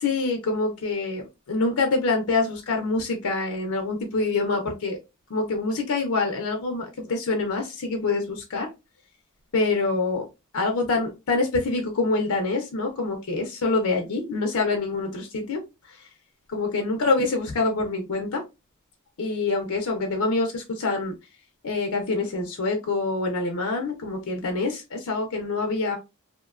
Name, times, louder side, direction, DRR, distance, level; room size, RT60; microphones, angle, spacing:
voice 1, 0.0-5.0 5.3-8.7 9.5-10.2 10.5-15.6 15.9-16.0 16.5-18.4 19.2-21.1 21.6-26.0, left 3 dB, 70° left, 3 dB, 0.5 m, -26 dB
2.6 x 2.1 x 2.3 m, 0.25 s
head